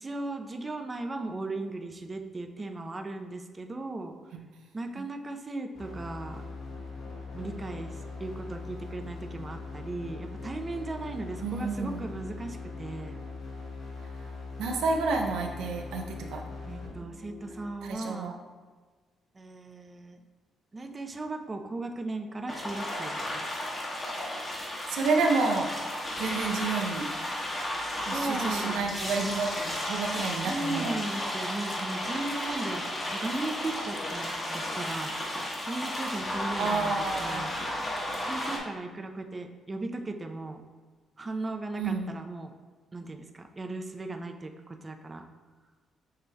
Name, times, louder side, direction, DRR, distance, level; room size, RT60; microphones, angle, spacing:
voice 1, 0.0-4.1 4.7-6.4 7.3-7.9 8.2-13.1 16.7-18.4 19.4-20.2 20.7-23.4 28.1-28.8 30.4-32.8 33.1-35.1 35.6-36.9 37.2-37.5 38.3-40.6 41.2-42.5 42.9-43.2 43.6-44.5 44.8-45.2, right 2 dB, 25° right, 5 dB, 0.5 m, -36 dB
sound 1, 5.7-17.7, left 3 dB, 80° left, 1.4 m, -41 dB
voice 2, 11.4-12.0 14.6-16.4 17.8-18.3 24.9-25.7 26.2-27.1 28.0-31.0 36.6-37.5 41.8-42.2, right 4 dB, 85° right, 1 dB, 0.5 m, -30 dB
sound 2, 22.5-38.6, left 1 dB, 30° left, 1.2 m, -33 dB
7.4 x 3.2 x 2.2 m, 1.4 s
cardioid pair, 90°, 0 cm